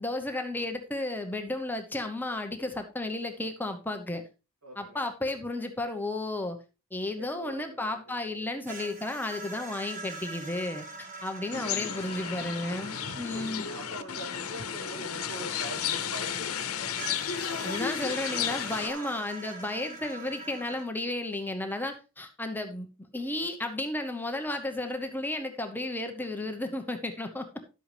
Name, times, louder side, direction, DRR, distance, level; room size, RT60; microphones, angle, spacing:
voice 1, 0.0-4.2 4.8-6.6 6.9-13.7 17.6-22.9 23.1-27.5, left 2 dB, 10° left, 5 dB, 0.8 m, -33 dB
voice 2, 4.6-5.1 7.2-8.7 11.4-11.6 13.3-17.0 18.8-19.2 26.4-26.7, right 1 dB, 85° right, 2 dB, 2.9 m, -44 dB
sound 1, 8.7-16.3 17.0-20.8, right 3 dB, 35° right, 1.3 m, -44 dB
sound 2, 11.5-18.9, left 8 dB, 90° left, 0.9 m, -33 dB
11.5 x 7.8 x 3.3 m, 0.30 s
head